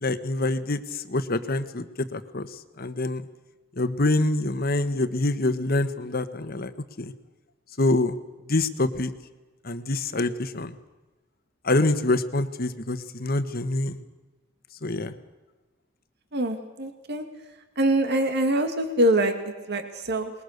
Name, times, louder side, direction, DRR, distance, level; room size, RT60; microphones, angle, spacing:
voice 1, 0.0-1.8 2.1-2.5 2.8-3.2 3.8-6.7 7.0-7.1 7.8-8.1 8.5-9.1 9.6-10.7 11.6-14.0 14.8-15.1, left 2 dB, 50° left, 10 dB, 1.4 m, -25 dB
voice 2, 16.3-17.2 17.8-20.3, right 1 dB, 55° right, 7 dB, 2.2 m, -24 dB
26.5 x 21.5 x 6.7 m, 1.2 s
head